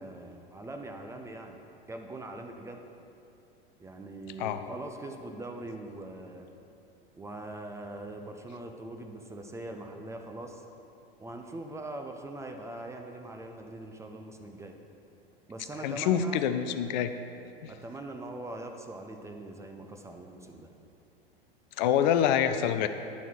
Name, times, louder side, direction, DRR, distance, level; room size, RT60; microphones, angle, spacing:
voice 1, 0.0-1.6 1.9-2.8 3.8-6.5 7.1-10.6 11.2-14.7 15.5-16.4 17.7-20.7, right 2 dB, 10° right, 3 dB, 0.4 m, -42 dB
voice 2, 15.8-17.1 17.6-17.7 21.8-22.9, left 9 dB, 50° left, 10 dB, 0.5 m, -26 dB
11.0 x 4.2 x 4.6 m, 2.7 s
hypercardioid pair, 95°, 29 cm